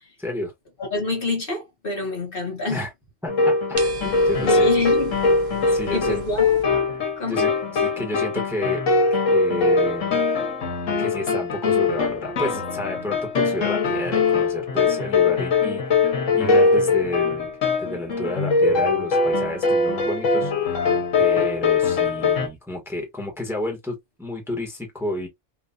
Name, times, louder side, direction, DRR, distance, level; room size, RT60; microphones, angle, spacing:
voice 1, 0.2-0.5 2.7-2.9 3.2-3.5 3.8-4.7 5.7-6.2 7.3-8.8 9.3-10.2 11.0-15.8 16.3-17.5 17.8-20.9 21.2-25.3, left 1 dB, ahead, 1.2 m, -30 dB
voice 2, 0.8-2.8 4.4-5.2 5.6-6.6 7.2-7.5, left 3 dB, 45° left, 1.3 m, -27 dB
sound 1, 3.3-22.5, left 4 dB, 80° left, 1.5 m, -21 dB
sound 2, 3.8-6.6, right 4 dB, 45° right, 0.6 m, -37 dB
3.9 x 2.5 x 2.7 m
omnidirectional pair, 1.3 m